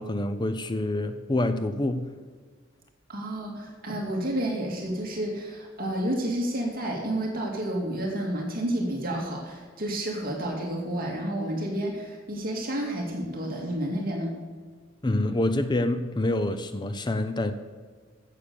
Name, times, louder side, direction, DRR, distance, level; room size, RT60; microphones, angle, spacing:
voice 1, 0.0-2.1 15.0-17.5, left 1 dB, 25° left, 10 dB, 0.6 m, -27 dB
voice 2, 3.1-14.3, right 1 dB, 50° right, -1 dB, 2.3 m, -30 dB
15.5 x 6.8 x 6.9 m, 1.5 s
head